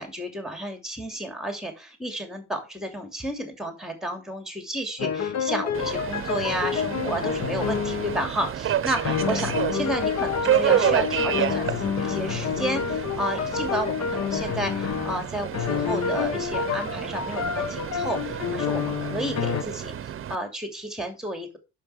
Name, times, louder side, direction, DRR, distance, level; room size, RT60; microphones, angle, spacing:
voice 1, 0.0-21.6, right 1 dB, ahead, 5 dB, 2.8 m, -32 dB
sound 1, 5.0-8.3 9.0-15.3 15.5-19.6, left 7 dB, 55° left, 1.1 m, -28 dB
Subway metro underground, 5.7-20.4, right 10 dB, 40° right, 0.9 m, -30 dB
7.7 x 6.7 x 4.9 m, 0.27 s
cardioid pair, 90°, 31 cm